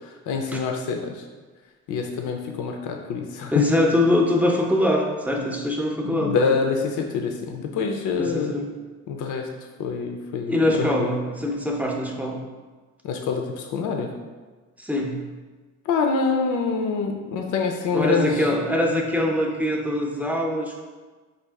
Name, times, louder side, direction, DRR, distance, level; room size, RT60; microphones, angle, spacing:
voice 1, 0.3-1.2 1.9-3.5 6.0-8.5 9.1-9.5 9.8-11.1 13.0-14.1 15.9-18.4, left 5 dB, 80° left, 3 dB, 0.6 m, -26 dB
voice 2, 3.5-6.3 8.2-8.7 10.5-12.4 14.8-15.2 17.9-20.8, left 1 dB, 5° right, 0 dB, 0.6 m, -23 dB
5.2 x 2.4 x 3.5 m, 1.4 s
cardioid pair, 90°, 30 cm